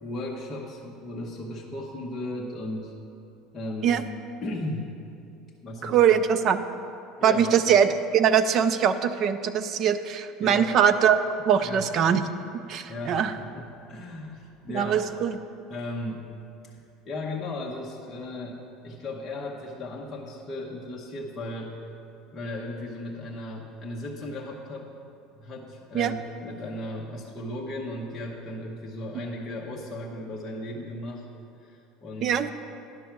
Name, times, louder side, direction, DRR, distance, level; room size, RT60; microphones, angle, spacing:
voice 1, 0.0-2.9 3.5-4.0 4.4-4.9 5.6-6.1 7.2-7.6 10.4-10.7 11.6-11.9 12.9-15.0 15.7-16.2 16.6-21.7 22.3-24.9 25.3-31.2 31.6-32.4, left 1 dB, 20° left, -4 dB, 0.8 m, -36 dB
voice 2, 5.8-6.6 7.2-11.2 11.4-12.2 12.7-13.3 14.7-15.4 25.9-26.2 32.2-32.5, right 8 dB, 35° right, 10 dB, 0.4 m, -22 dB
10.5 x 6.2 x 5.9 m, 2.6 s
cardioid pair, 170°, 0 cm